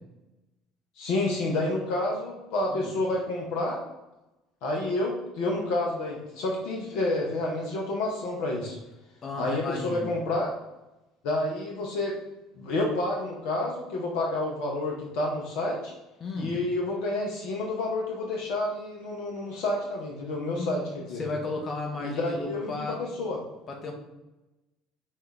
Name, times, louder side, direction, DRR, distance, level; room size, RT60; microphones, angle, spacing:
voice 1, 1.0-3.8 4.6-8.8 9.4-10.5 11.2-12.1 12.6-15.9 16.4-21.2 22.0-23.4, left 2 dB, 65° left, -1 dB, 0.7 m, -29 dB
voice 2, 9.2-10.1 16.2-16.6 20.5-20.9 21.1-23.0 23.7-23.9, left 3 dB, 40° left, 1 dB, 0.9 m, -34 dB
5.4 x 2.4 x 3.3 m, 0.99 s
figure-of-eight pair, 60°, 0 cm